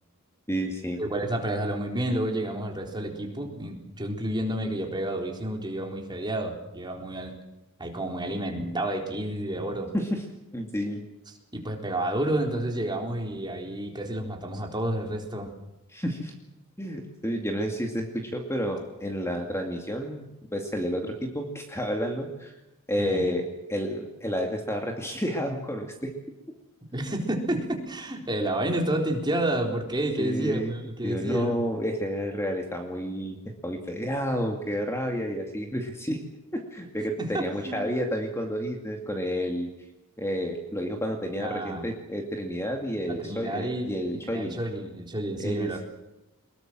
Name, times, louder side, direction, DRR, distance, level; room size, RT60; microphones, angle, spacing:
voice 1, 0.5-1.0 9.9-10.2 10.5-11.0 15.9-16.3 16.8-20.3 20.5-22.5 22.9-23.4 23.7-26.1 30.2-30.7 31.0-33.4 33.6-36.2 36.5-39.7 40.2-44.6 45.4-45.8, equal, 10° left, 3 dB, 2.3 m, -30 dB
voice 2, 1.0-7.4 7.8-9.9 11.5-15.5 23.0-23.3 26.9-31.6 37.2-37.8 41.3-41.9 43.1-45.8, right 1 dB, 20° right, 2 dB, 4.0 m, -30 dB
23.5 x 21.5 x 7.6 m, 0.93 s
head